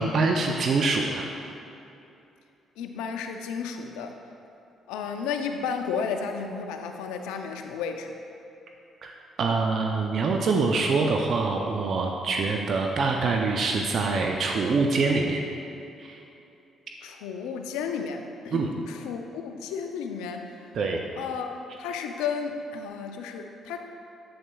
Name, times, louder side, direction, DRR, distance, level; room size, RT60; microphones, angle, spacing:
voice 1, 0.0-1.3 9.0-15.4 16.0-16.2 18.5-18.7 20.7-21.0, right 3 dB, 60° right, 2 dB, 0.5 m, -25 dB
voice 2, 2.8-4.2 4.9-8.1 17.0-20.6 21.2-23.8, left 6 dB, 80° left, 5 dB, 0.4 m, -33 dB
8.0 x 7.7 x 2.3 m, 2.8 s
hypercardioid pair, 55°, 0 cm